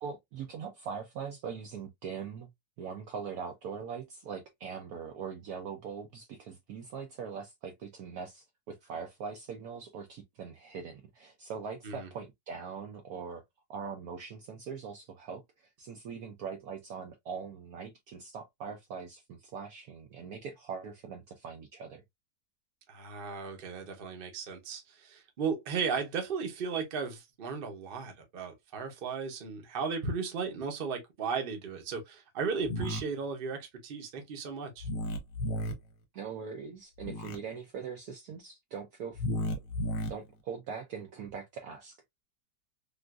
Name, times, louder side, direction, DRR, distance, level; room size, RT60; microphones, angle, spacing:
voice 1, 0.0-2.5 2.8-13.4 13.7-22.0 36.1-39.2 40.1-42.0, right 6 dB, 70° right, 0.9 m, -41 dB
voice 2, 22.9-34.9, right 5 dB, 45° right, 0.8 m, -35 dB
sound 1, 32.6-33.0 34.8-35.7 37.0-37.4 39.1-40.1, left 1 dB, 65° left, 1.2 m, -33 dB
3.7 x 2.4 x 2.3 m
omnidirectional pair, 1.9 m